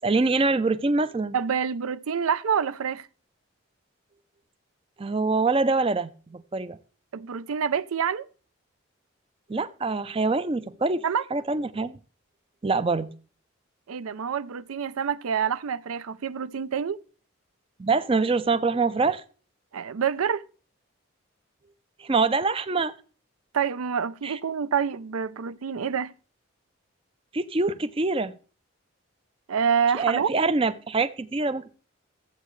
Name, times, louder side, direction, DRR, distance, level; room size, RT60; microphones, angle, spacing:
voice 1, 0.0-1.3 5.0-6.8 9.5-11.0 11.3-12.0 12.6-13.1 17.8-19.2 22.0-22.9 24.2-24.4 27.3-28.3 29.9-31.7, right 3 dB, 25° right, 0.4 m, -25 dB
voice 2, 1.3-3.1 7.1-8.3 11.0-11.2 13.9-17.0 19.7-20.4 23.5-26.1 29.5-30.3, right 7 dB, 85° right, 0.5 m, -27 dB
13.0 x 8.1 x 3.1 m
head